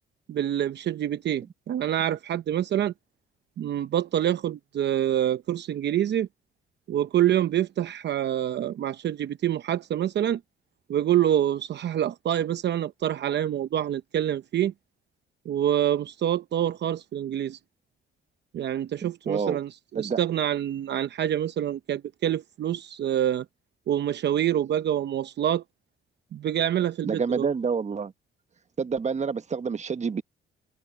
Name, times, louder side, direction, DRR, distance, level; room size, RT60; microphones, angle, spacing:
voice 1, 0.3-2.9 3.6-6.3 6.9-10.4 10.9-14.7 15.5-17.6 18.5-23.4 23.9-25.6 26.3-27.5, right 11 dB, 60° right, 0.8 m, -26 dB
voice 2, 19.0-19.6 19.9-20.2 27.0-28.1 28.8-30.2, right 5 dB, 35° right, 1.3 m, -28 dB
cardioid pair, 90°, 20 cm